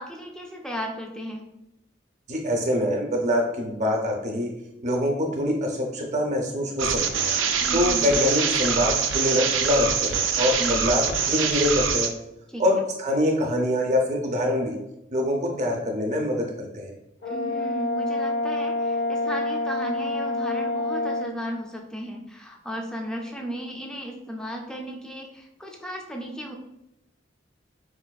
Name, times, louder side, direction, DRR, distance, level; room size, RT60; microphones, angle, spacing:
voice 1, 0.0-1.5 7.6-8.1 10.6-10.9 12.5-12.6 17.3-26.5, equal, 5° left, 1 dB, 0.3 m, -35 dB
voice 2, 2.3-4.5 4.8-7.3 7.7-12.1 12.6-14.7 15.1-16.9, left 1 dB, 40° right, 1 dB, 0.6 m, -24 dB
sound 1, 6.8-12.1, right 6 dB, 85° right, 0.4 m, -24 dB
Brass instrument, 17.2-21.3, left 2 dB, 65° left, 0.6 m, -27 dB
4.3 x 2.4 x 2.2 m, 0.87 s
head